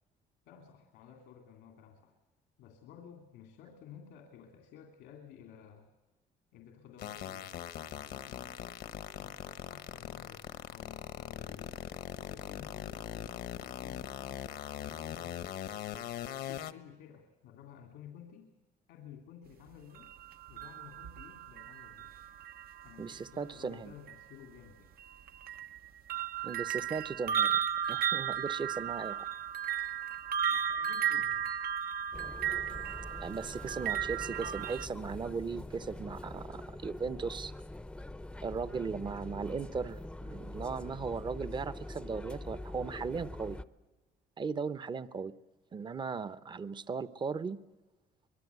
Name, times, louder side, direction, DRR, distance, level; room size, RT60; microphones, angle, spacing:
voice 1, 0.4-2.2 2.6-5.9 6.5-7.6 7.8-8.6 9.2-11.8 12.2-14.4 14.8-15.4 16.4-18.5 18.9-20.1 20.5-22.2 22.8-24.9 30.4-31.5, left 8 dB, 90° left, 3 dB, 2.6 m, -54 dB
sound 1, 7.0-16.7, left 11 dB, 70° left, 1.2 m, -41 dB
sound 2, 19.9-23.1 24.1-24.2 25.0-34.9, right 9 dB, 60° right, 0.9 m, -34 dB
voice 2, 23.0-23.9 26.4-27.6 27.9-29.2 33.2-37.5 38.4-43.6 44.4-45.3 45.7-47.6, right 5 dB, 25° right, 14 dB, 0.8 m, -37 dB
sound 3, 32.1-43.6, left 1 dB, 5° left, 0.7 m, -44 dB
24.5 x 21.0 x 8.2 m, 1.2 s
cardioid pair, 110°, 17 cm